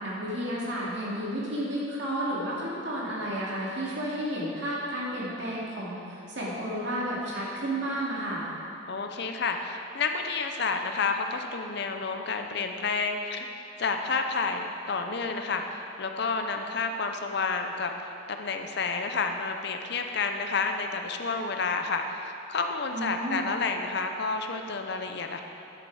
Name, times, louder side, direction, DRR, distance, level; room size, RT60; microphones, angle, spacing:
voice 1, 0.0-8.4 22.9-23.5, right 1 dB, 65° right, -6 dB, 2.4 m, -32 dB
voice 2, 8.9-13.5 13.8-25.4, left 4 dB, 60° left, 5 dB, 0.7 m, -30 dB
10.5 x 7.6 x 4.8 m, 2.7 s
head